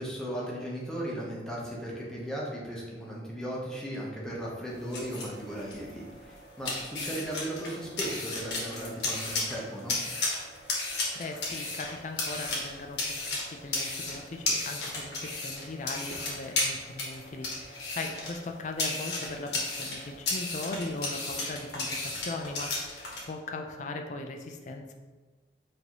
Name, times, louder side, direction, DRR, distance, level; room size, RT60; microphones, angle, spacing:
voice 1, 0.0-10.0, right 1 dB, 5° left, -5 dB, 0.7 m, -36 dB
sound 1, 4.7-23.2, left 2 dB, 75° left, 1.1 m, -34 dB
voice 2, 10.8-13.2 13.5-24.9, left 2 dB, 45° left, 4 dB, 0.4 m, -39 dB
4.6 x 2.7 x 2.9 m, 1.3 s
head